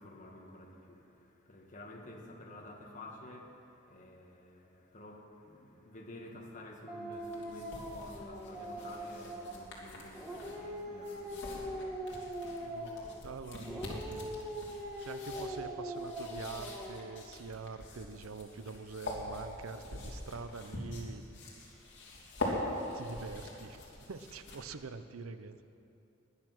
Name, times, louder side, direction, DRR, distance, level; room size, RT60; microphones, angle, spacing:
voice 1, 0.0-13.2, left 1 dB, 40° left, 0 dB, 1.8 m, -51 dB
Dog, 6.9-9.7 10.1-13.2 13.6-17.2, equal, 5° right, 1.6 m, -42 dB
sound 1, 7.1-24.9, left 1 dB, 60° left, 3.1 m, -44 dB
voice 2, 12.6-13.0 13.2-14.3 15.0-21.2 22.4-25.6, right 4 dB, 85° right, 11 dB, 0.7 m, -45 dB
19.5 x 10.5 x 6.1 m, 2.8 s
head